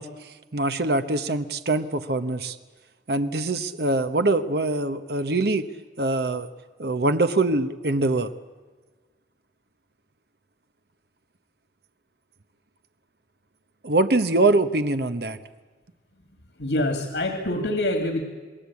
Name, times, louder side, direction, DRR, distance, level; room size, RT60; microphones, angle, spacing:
voice 1, 0.0-2.6 3.1-5.7 6.0-6.5 6.8-8.3 13.8-15.4, right 2 dB, 65° right, 10 dB, 1.0 m, -23 dB
voice 2, 16.6-18.2, left 1 dB, 75° left, 5 dB, 2.2 m, -25 dB
28.0 x 20.5 x 8.5 m, 1.4 s
head